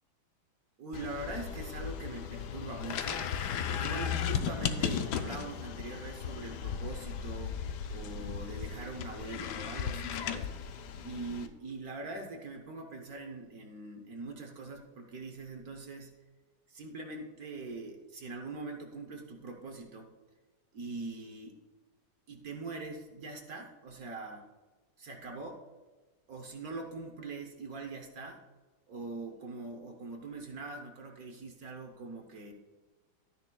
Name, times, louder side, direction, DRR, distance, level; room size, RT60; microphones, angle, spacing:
voice 1, 0.8-3.3 3.7-7.6 7.9-16.1 16.7-20.1 20.7-21.6 22.3-24.5 25.0-25.6 26.3-28.4 28.9-32.5, right 3 dB, 60° right, 3 dB, 1.1 m, -42 dB
sound 1, 0.9-11.5, left 7 dB, 70° left, 1.0 m, -36 dB
12.5 x 9.9 x 2.3 m, 1.3 s
omnidirectional pair, 2.2 m